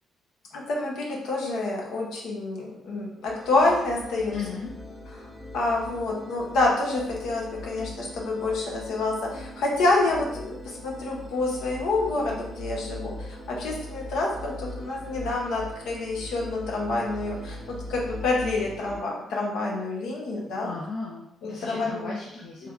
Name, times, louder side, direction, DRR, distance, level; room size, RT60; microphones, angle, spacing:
voice 1, 0.5-4.4 5.1-20.7 21.4-22.1 22.6-22.7, left 2 dB, 80° left, -2 dB, 0.9 m, -28 dB
sound 1, 3.2-19.0, left 1 dB, 5° right, 1.0 m, -41 dB
voice 2, 4.3-4.7 20.6-22.7, left 5 dB, 60° left, -3 dB, 0.6 m, -36 dB
3.3 x 2.3 x 3.4 m, 0.81 s
cardioid pair, 90°, 0 cm